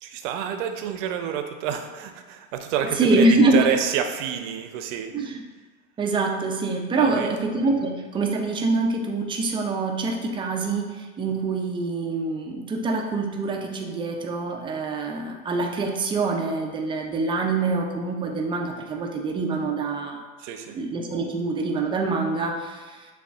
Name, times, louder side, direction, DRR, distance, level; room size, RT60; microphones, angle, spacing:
voice 1, 0.0-5.1 7.0-7.3 20.4-20.8, right 8 dB, 60° right, 6 dB, 0.6 m, -28 dB
voice 2, 2.9-3.8 5.1-5.4 6.0-20.2 20.7-23.1, right 3 dB, 15° right, 2 dB, 0.3 m, -25 dB
6.6 x 2.3 x 2.3 m, 1.4 s
hypercardioid pair, 100°, 40 cm